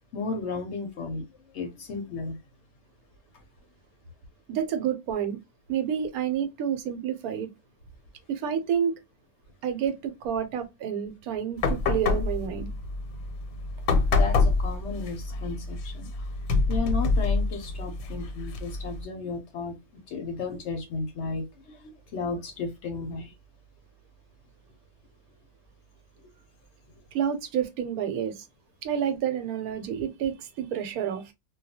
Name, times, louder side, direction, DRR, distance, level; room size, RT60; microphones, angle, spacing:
voice 1, 0.1-1.2 1.5-2.4 14.1-16.1 16.7-19.8 20.1-23.3, left 4 dB, 65° left, 0.8 m, -34 dB
voice 2, 4.5-5.4 5.7-7.5 8.3-8.9 9.6-12.7 27.1-28.4 28.8-31.3, right 8 dB, 85° right, 1.1 m, -29 dB
sound 1, 11.6-19.0, left 3 dB, 90° left, 1.1 m, -27 dB
2.3 x 2.2 x 2.6 m
omnidirectional pair, 1.5 m